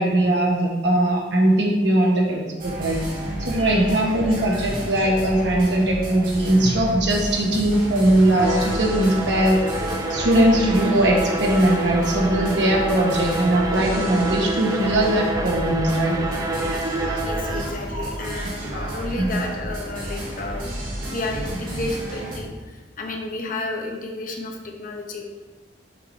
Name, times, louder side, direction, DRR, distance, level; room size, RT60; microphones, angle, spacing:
voice 1, 0.0-3.0 3.4-9.6 10.1-16.2 19.2-19.5, right 1 dB, 70° right, -1 dB, 1.4 m, -20 dB
sound 1, 2.6-22.4, right 1 dB, 50° right, 1.9 m, -31 dB
Bowed string instrument, 8.3-17.8, right 2 dB, 20° right, 0.7 m, -28 dB
voice 2, 17.2-20.7 21.0-25.3, left 2 dB, 50° left, 2 dB, 0.9 m, -32 dB
6.8 x 4.8 x 4.1 m, 1.3 s
head